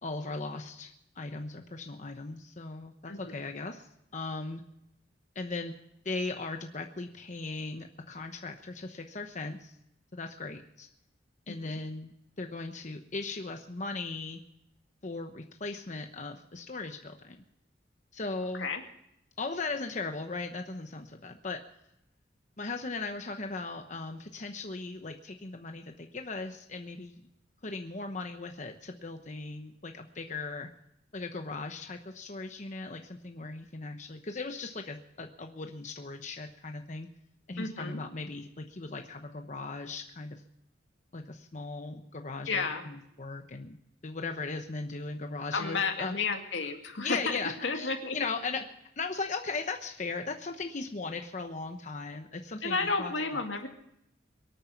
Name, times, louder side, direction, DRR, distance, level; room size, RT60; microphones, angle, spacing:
voice 1, 0.0-3.9 4.1-4.6 5.3-5.7 6.0-9.7 10.1-10.9 11.5-12.1 12.4-14.4 15.0-17.4 18.1-18.7 19.4-21.6 22.6-27.2 27.6-30.7 31.1-37.1 37.5-40.4 41.1-43.8 44.0-46.1 47.0-48.6 49.0-53.4, left 3 dB, 40° left, 5 dB, 1.0 m, -38 dB
voice 2, 11.5-11.8 18.6-18.8 37.6-38.0 42.5-42.9 45.5-48.2 52.6-53.7, left 4 dB, 80° left, 4 dB, 2.3 m, -32 dB
24.0 x 9.1 x 5.9 m, 0.80 s
head